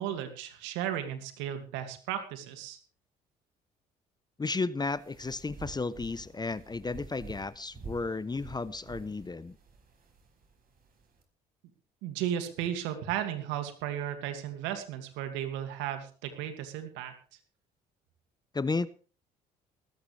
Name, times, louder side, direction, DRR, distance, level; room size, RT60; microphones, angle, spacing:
voice 1, 0.0-2.8 12.0-17.1, right 10 dB, 75° right, 7 dB, 2.4 m, -35 dB
voice 2, 4.4-9.6 18.5-18.9, left 3 dB, 20° left, 16 dB, 0.9 m, -33 dB
sound 1, 4.8-11.2, right 4 dB, 50° right, 4.7 m, -49 dB
19.0 x 14.0 x 3.4 m, 0.39 s
hypercardioid pair, 60°, 19 cm